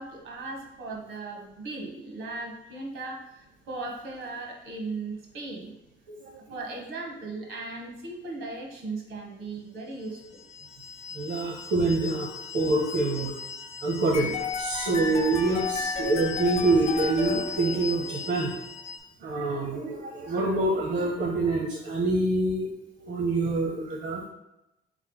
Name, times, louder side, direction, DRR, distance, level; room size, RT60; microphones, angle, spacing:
voice 1, 0.0-5.7 6.5-10.4, right 3 dB, 80° right, 1 dB, 1.1 m, -37 dB
sound 1, 10.0-19.0, left 6 dB, 80° left, 0.6 m, -40 dB
voice 2, 11.1-13.4 13.8-18.5 19.2-22.7 23.0-24.2, right 2 dB, 65° right, 0 dB, 0.7 m, -26 dB
sound 2, 14.1-18.2, left 5 dB, 35° left, 0.4 m, -33 dB
3.6 x 3.2 x 3.9 m, 0.89 s
cardioid pair, 90°, 20 cm